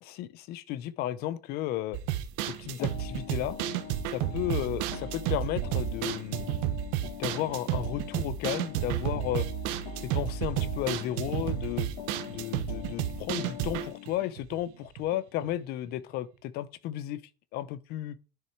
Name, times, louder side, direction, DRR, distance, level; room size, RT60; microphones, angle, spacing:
voice 1, 0.0-2.0 2.4-3.6 4.1-6.5 7.2-9.5 10.0-11.9 12.3-17.2 17.5-18.2, left 13 dB, 60° left, 0.8 m, -33 dB
sound 1, 1.9-15.1 15.4-15.5 15.9-16.0, right 12 dB, 90° right, 1.2 m, -32 dB
sound 2, 2.8-14.1, left 11 dB, 75° left, 1.6 m, -44 dB
10.5 x 6.6 x 4.6 m
cardioid pair, 155°, 18 cm